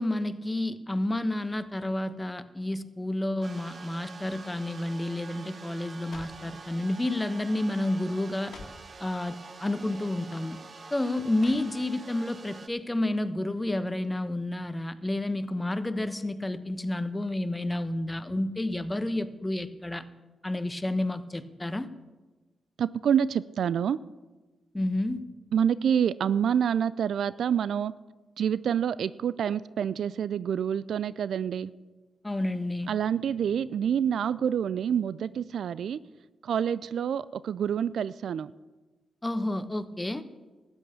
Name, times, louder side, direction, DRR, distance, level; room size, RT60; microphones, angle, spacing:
voice 1, 0.0-8.5 9.0-10.6 10.9-20.0 20.4-21.9 24.7-25.2 32.2-32.9 39.2-40.2, left 1 dB, 20° left, 12 dB, 1.0 m, -30 dB
sound 1, 3.4-12.7, right 4 dB, 50° right, 0.9 m, -46 dB
sound 2, 4.6-4.9 5.7-6.5 7.3-7.6 7.9-8.0 8.3-8.9 9.9-10.0 11.3-12.1 12.5-12.6, left 4 dB, 65° left, 1.9 m, -50 dB
voice 2, 22.8-24.0 25.5-27.9 28.4-31.7 32.9-36.0 36.4-38.5, right 8 dB, 70° right, 18 dB, 0.3 m, -27 dB
13.0 x 8.9 x 6.8 m, 1.2 s
supercardioid pair, 45°, 0 cm